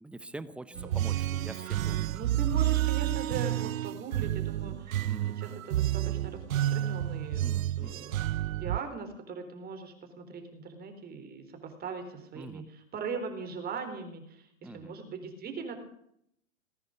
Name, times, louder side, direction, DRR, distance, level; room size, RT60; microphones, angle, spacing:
voice 1, 0.0-2.4 5.1-5.4 7.4-8.1 12.3-12.7 14.6-14.9, right 2 dB, 5° right, 14 dB, 0.7 m, -45 dB
sound 1, 0.8-8.8, right 13 dB, 85° right, 0.6 m, -30 dB
voice 2, 2.1-5.1 5.4-8.2 8.6-15.8, right 5 dB, 25° right, 6 dB, 3.9 m, -40 dB
19.5 x 10.5 x 6.8 m, 0.70 s
hypercardioid pair, 125°, 39 cm